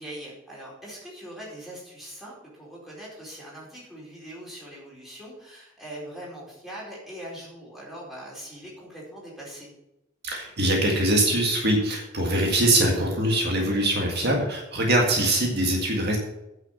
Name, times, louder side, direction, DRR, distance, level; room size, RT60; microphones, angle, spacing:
voice 1, 0.0-9.7, right 1 dB, ahead, -6 dB, 4.5 m, -41 dB
voice 2, 10.2-16.2, right 1 dB, 55° right, 0 dB, 1.9 m, -23 dB
9.9 x 6.0 x 7.2 m, 0.91 s
head